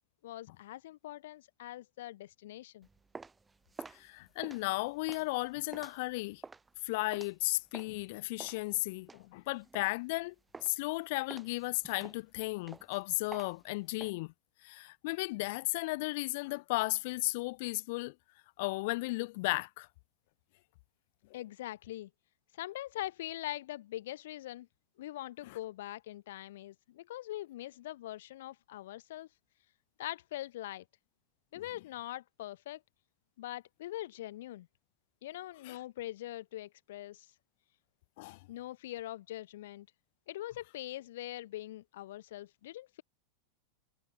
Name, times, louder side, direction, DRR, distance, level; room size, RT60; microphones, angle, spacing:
voice 1, 0.2-2.9 21.3-22.1 22.6-24.7 25.0-29.3 30.0-30.8 31.5-32.8 33.4-34.7 35.2-37.3 38.5-39.9 40.3-43.0, left 14 dB, 75° left, 1.5 m, -42 dB
sound 1, 2.8-8.0 8.4-10.2 10.5-10.9 11.3-14.1, right 4 dB, 10° right, 5.3 m, -50 dB
voice 2, 3.9-6.4 6.8-10.3 10.6-14.3 14.6-18.1 18.6-19.9 25.4-25.6 31.5-31.6 35.6-35.8 38.2-38.5, left 24 dB, 60° left, 0.9 m, -35 dB
supercardioid pair, 145°, 0 cm